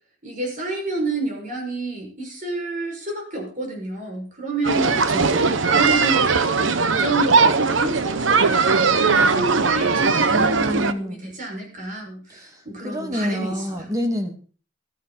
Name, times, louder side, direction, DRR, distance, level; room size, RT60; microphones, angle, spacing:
voice 1, 0.2-4.9 5.3-13.9, right 2 dB, 45° right, 1 dB, 6.1 m, -30 dB
sound 1, 4.6-10.9, right 4 dB, 80° right, 0.9 m, -19 dB
voice 2, 4.8-5.5 10.3-11.2 12.3-14.3, left 1 dB, 20° right, 4 dB, 2.4 m, -28 dB
15.0 x 13.5 x 4.2 m, 0.39 s
head